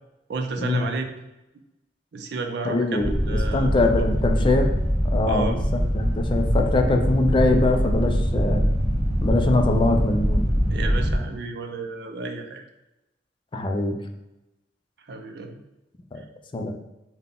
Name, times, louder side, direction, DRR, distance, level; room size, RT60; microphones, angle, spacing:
voice 1, 0.3-1.0 2.1-3.8 5.3-5.6 10.7-12.6 15.1-15.6, right 3 dB, 65° right, 5 dB, 0.4 m, -32 dB
voice 2, 2.6-4.7 5.0-8.7 9.2-10.4 13.5-13.9 16.1-16.2 16.5-16.7, left 2 dB, 30° left, 4 dB, 0.4 m, -23 dB
sound 1, 3.0-11.2, equal, 10° right, 1.5 m, -23 dB
3.8 x 2.2 x 3.6 m, 0.96 s
head